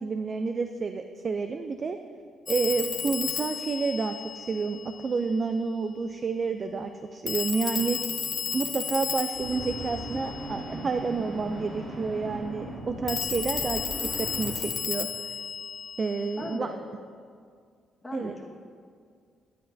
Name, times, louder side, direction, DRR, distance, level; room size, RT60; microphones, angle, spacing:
voice 1, 0.0-2.0 2.5-13.9 14.2-15.1 16.0-16.7 18.1-18.3, right 4 dB, 40° right, 7 dB, 0.3 m, -30 dB
Telephone, 2.5-5.1 7.3-10.9 13.1-16.6, left 7 dB, 45° left, 0.4 m, -33 dB
sound 1, 9.3-14.5, right 1 dB, 60° right, 2.3 m, -38 dB
voice 2, 16.4-16.8 18.0-18.4, left 2 dB, 15° left, -2 dB, 1.4 m, -37 dB
11.0 x 8.7 x 2.6 m, 2.1 s
cardioid pair, 90°, 0 cm